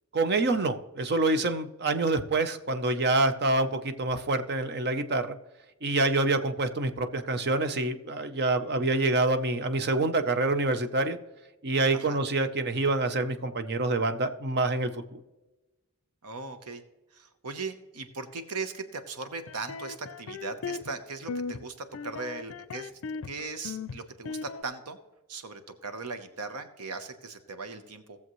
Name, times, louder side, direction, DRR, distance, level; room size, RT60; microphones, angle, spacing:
voice 1, 0.1-5.4 5.8-11.2 11.6-15.2, right 2 dB, 50° right, 9 dB, 0.8 m, -26 dB
voice 2, 16.2-16.8 17.1-22.9 23.3-25.0 25.3-28.2, right 4 dB, 85° right, 9 dB, 1.0 m, -38 dB
sound 1, 19.5-21.0 21.3-21.6 21.9-23.3 23.6-24.6, left 4 dB, 65° left, 0.4 m, -37 dB
18.0 x 7.2 x 3.1 m, 1.1 s
head